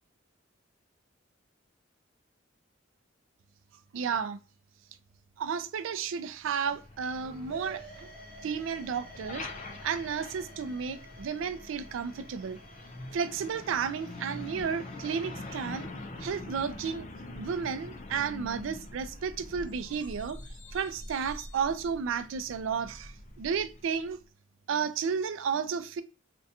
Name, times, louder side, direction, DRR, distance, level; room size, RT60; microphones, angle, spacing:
voice 1, 3.9-4.4 5.4-8.1 8.4-9.5 9.8-12.6 13.1-15.9 16.2-17.1 17.4-20.4 20.7-24.2 24.7-26.0, right 6 dB, 80° right, 0.3 m, -32 dB
Truck, 6.4-24.1, left 2 dB, 40° left, 0.4 m, -45 dB
sound 1, 7.2-15.9, right 2 dB, 5° left, 0.7 m, -52 dB
2.5 x 2.1 x 2.7 m
head